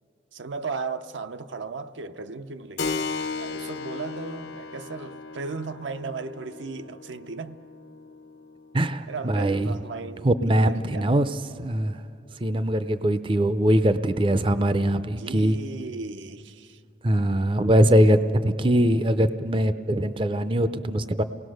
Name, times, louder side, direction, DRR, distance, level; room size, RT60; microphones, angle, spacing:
voice 1, 0.3-2.9 3.3-7.6 9.1-11.0 15.2-16.8, right 4 dB, 80° right, 0.7 m, -36 dB
Keyboard (musical), 2.8-11.0, left 4 dB, 65° left, 0.8 m, -37 dB
voice 2, 8.7-9.8 10.2-12.0 12.4-15.6 17.0-21.2, right 1 dB, 25° right, 0.5 m, -22 dB
28.5 x 18.5 x 6.4 m
head